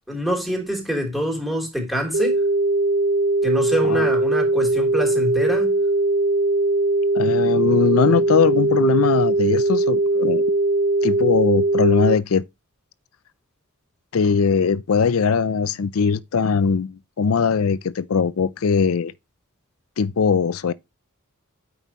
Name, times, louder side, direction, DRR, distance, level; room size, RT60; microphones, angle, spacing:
voice 1, 0.1-2.4 3.4-5.8, equal, ahead, 3.4 m, -25 dB
sound 1, 2.1-12.1, right 2 dB, 60° right, 0.6 m, -20 dB
voice 2, 7.1-10.4 11.0-12.4 14.1-19.1 20.0-20.7, left 5 dB, 70° left, 0.5 m, -20 dB
9.0 x 6.1 x 3.0 m
head